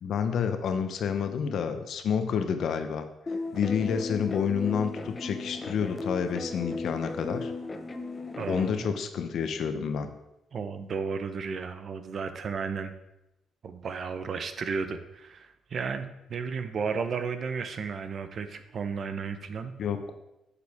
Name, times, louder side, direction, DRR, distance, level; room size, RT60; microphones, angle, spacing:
voice 1, 0.0-3.1 3.5-7.5 8.5-10.1 19.8-20.1, left 7 dB, 65° left, 8 dB, 0.9 m, -29 dB
sound 1, 3.3-8.7, left 3 dB, 30° left, 0.7 m, -36 dB
voice 2, 8.4-9.0 9.7-9.9 10.5-12.9 13.6-19.7, right 5 dB, 50° right, 9 dB, 0.8 m, -34 dB
9.3 x 6.9 x 3.6 m, 0.89 s
cardioid pair, 90°, 0 cm